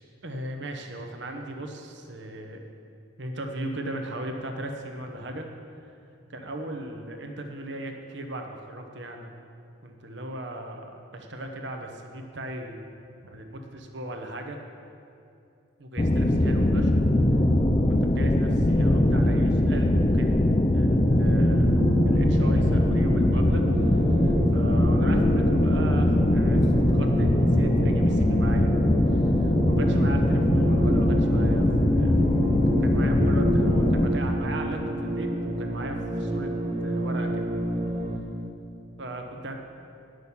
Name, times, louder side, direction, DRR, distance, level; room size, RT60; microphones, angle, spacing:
voice 1, 0.2-2.6 3.2-5.5 6.3-9.3 9.8-10.8 11.1-12.8 13.2-14.6 15.8-17.0 17.9-28.7 29.1-32.2 32.7-36.5 36.8-37.5 39.0-39.6, right 1 dB, 60° right, 4 dB, 0.9 m, -37 dB
sound 1, 16.0-34.1, left 1 dB, 25° left, 0.4 m, -21 dB
sound 2, 21.5-38.2, right 1 dB, 30° right, 0.8 m, -29 dB
11.0 x 6.4 x 7.1 m, 2.7 s
head